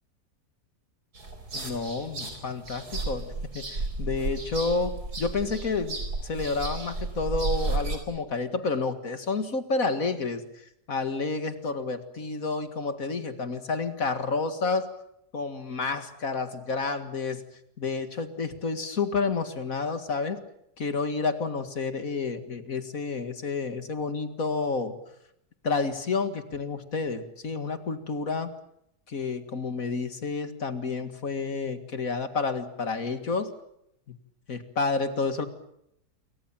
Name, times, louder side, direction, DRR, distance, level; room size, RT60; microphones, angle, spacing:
sound 1, 1.1-8.0, right 3 dB, 70° right, 5.0 m, -33 dB
voice 1, 1.5-10.4 10.9-14.9 15.3-17.4 17.8-20.4 20.8-24.9 25.6-28.5 29.1-33.5 34.1-34.2 34.5-35.4, left 4 dB, 55° left, 9 dB, 2.4 m, -30 dB
28.0 x 24.0 x 7.4 m, 0.75 s
omnidirectional pair, 1.7 m